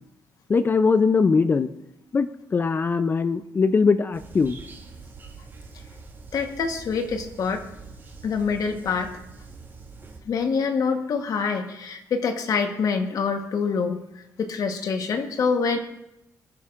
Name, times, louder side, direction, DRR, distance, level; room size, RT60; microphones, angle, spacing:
voice 1, 0.5-1.7 2.1-4.6, left 4 dB, 30° left, 12 dB, 0.4 m, -21 dB
sound 1, 4.1-10.2, right 4 dB, 35° right, 3.1 m, -44 dB
voice 2, 6.3-7.7 8.2-9.1 10.2-15.8, left 5 dB, 60° left, 6 dB, 1.1 m, -26 dB
26.0 x 9.5 x 2.5 m, 0.87 s
cardioid pair, 125°, 7 cm